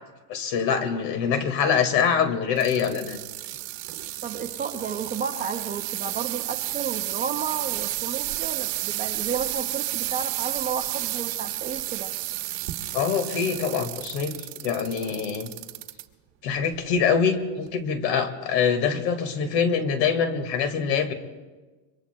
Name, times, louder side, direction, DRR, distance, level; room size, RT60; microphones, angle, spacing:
voice 1, 0.3-3.2 12.9-14.4 14.6-15.5 16.4-21.1, left 6 dB, 75° left, 8 dB, 2.0 m, -24 dB
sound 1, 2.6-16.0 16.6-17.0 17.7-17.8, right 17 dB, 60° right, 1.3 m, -32 dB
voice 2, 4.2-12.1, right 6 dB, 20° right, 5 dB, 0.4 m, -32 dB
26.0 x 23.0 x 2.2 m, 1.3 s
supercardioid pair, 140°, 50 cm